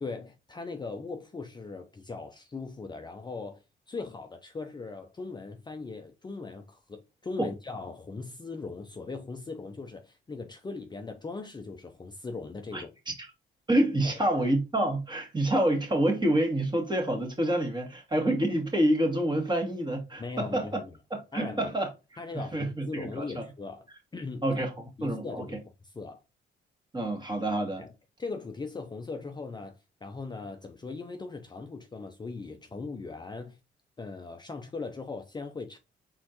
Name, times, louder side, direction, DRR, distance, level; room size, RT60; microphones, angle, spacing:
voice 1, 0.0-13.0 14.0-14.2 20.2-20.9 21.3-21.7 22.2-23.8 24.1-24.4 25.0-25.6 25.8-26.2 27.8-27.9 28.2-33.6 34.0-35.8, left 4 dB, 20° left, 0.6 m, -39 dB
voice 2, 13.7-20.8 21.1-21.9 22.3-23.5 24.4-24.7 25.0-25.6 26.9-27.8, right 1 dB, 20° right, 1.7 m, -27 dB
4.2 x 3.8 x 2.9 m
cardioid pair, 90°, 20 cm